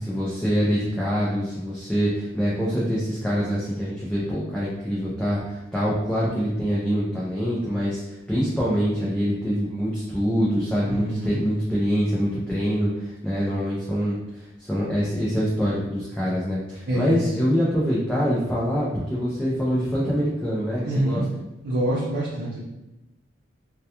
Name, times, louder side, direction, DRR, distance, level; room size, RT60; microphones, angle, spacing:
voice 1, 0.1-21.2, equal, 5° left, -8 dB, 0.4 m, -25 dB
voice 2, 10.8-11.4 16.9-17.3 20.8-21.2 21.6-22.6, right 1 dB, 60° right, -8 dB, 0.6 m, -26 dB
2.2 x 2.2 x 2.8 m, 0.99 s
head